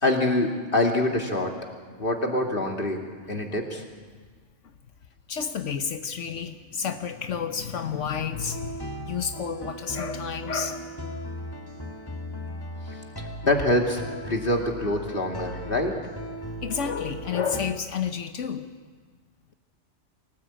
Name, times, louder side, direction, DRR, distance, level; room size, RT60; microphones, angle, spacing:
voice 1, 0.0-1.5 2.0-3.0 3.3-3.8 13.2-14.0 14.3-15.9, left 1 dB, 45° left, 2 dB, 2.8 m, -25 dB
voice 2, 5.3-11.0 16.6-18.7, left 7 dB, 80° left, 8 dB, 1.3 m, -30 dB
sound 1, 8.3-17.8, equal, 20° left, 1.5 m, -37 dB
24.0 x 18.5 x 8.8 m, 1.5 s
omnidirectional pair, 1.2 m